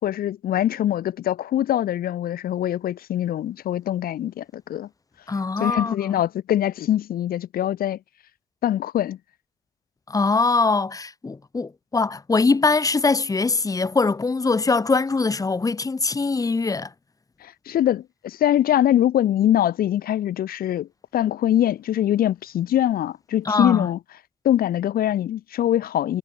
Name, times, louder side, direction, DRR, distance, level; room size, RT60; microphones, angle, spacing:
voice 1, 0.0-4.9 5.6-8.0 8.6-9.2 17.4-24.0 24.4-26.2, left 11 dB, 80° left, 2.2 m, -23 dB
voice 2, 5.3-5.9 10.1-16.9 23.4-23.9, left 3 dB, 25° left, 1.6 m, -22 dB
cardioid pair, 120°, 15 cm